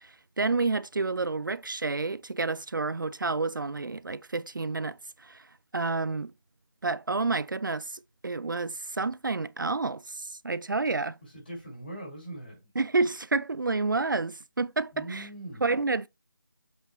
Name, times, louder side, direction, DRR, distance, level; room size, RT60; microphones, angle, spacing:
voice 1, 0.0-5.5 5.7-6.3 6.8-11.2 12.8-15.3 15.6-16.1, right 3 dB, 65° right, 0.4 m, -29 dB
voice 2, 11.2-12.7 14.9-15.7, right 1 dB, 25° left, 4.7 m, -41 dB
7.9 x 4.9 x 3.0 m
figure-of-eight pair, 180°, 12 cm